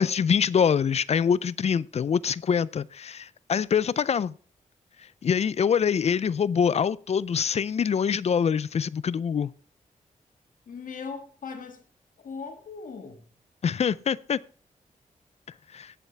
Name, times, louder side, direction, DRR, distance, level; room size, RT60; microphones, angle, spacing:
voice 1, 0.0-4.3 5.2-9.5 13.6-14.4 15.7-15.9, left 7 dB, 50° left, 0.4 m, -24 dB
voice 2, 10.7-11.8 12.2-13.2, left 5 dB, 75° left, 1.8 m, -39 dB
16.5 x 8.1 x 3.4 m
wide cardioid pair, 125°, 14 cm